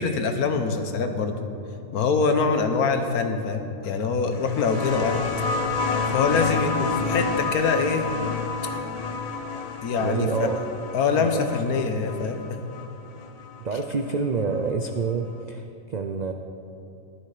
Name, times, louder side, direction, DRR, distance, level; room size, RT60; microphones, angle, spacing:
voice 1, 0.0-1.4 1.9-5.2 6.1-8.1 9.8-10.5 10.9-12.6, left 5 dB, 80° left, 7 dB, 1.4 m, -24 dB
sound 1, 4.3-13.6 14.7-14.8, left 4 dB, 45° left, 0.5 m, -29 dB
voice 2, 10.0-10.6 11.1-11.9 13.6-16.3, right 5 dB, 75° right, 5 dB, 0.4 m, -28 dB
14.0 x 11.0 x 4.9 m, 2.7 s
omnidirectional pair, 1.6 m